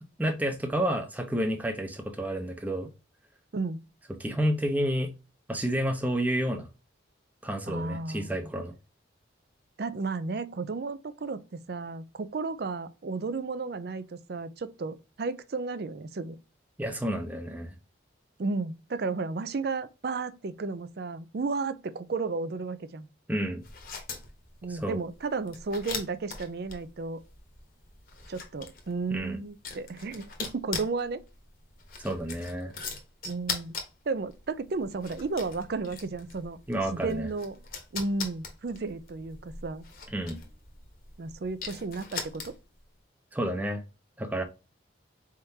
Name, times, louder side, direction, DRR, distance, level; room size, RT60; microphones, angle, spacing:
voice 1, 0.2-2.9 4.2-5.1 5.5-6.7 7.4-8.7 16.8-17.7 23.3-23.6 24.7-25.0 29.1-29.4 32.0-32.7 36.7-37.3 40.1-40.4 43.3-43.8 44.2-44.4, right 1 dB, 10° right, 0.6 m, -30 dB
voice 2, 7.7-8.5 9.8-16.4 18.4-23.1 24.6-27.2 28.3-31.2 33.3-33.7 34.1-36.6 36.9-37.6 37.9-39.8 41.2-42.5, right 3 dB, 55° right, 0.4 m, -33 dB
sound 1, 23.6-42.8, left 5 dB, 50° left, 1.1 m, -41 dB
4.4 x 3.6 x 2.7 m
head